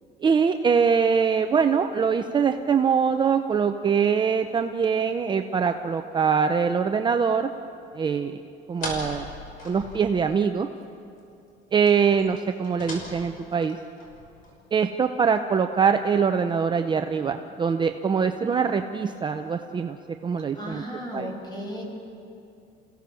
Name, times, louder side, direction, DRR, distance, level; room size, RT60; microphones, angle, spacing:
voice 1, 0.2-7.5 7.9-8.3 8.7-9.3 9.6-10.7 11.7-13.8 14.7-20.0 20.2-20.8 21.1-21.3, right 6 dB, 25° right, 6 dB, 0.7 m, -23 dB
sound 1, 8.7-10.5 10.8-10.9 11.2-11.3 11.8-14.8, left 1 dB, 50° left, 5.8 m, -39 dB
voice 2, 20.5-21.8, equal, 25° left, 1 dB, 5.6 m, -35 dB
29.0 x 17.0 x 7.0 m, 2.6 s
cardioid pair, 140°, 18 cm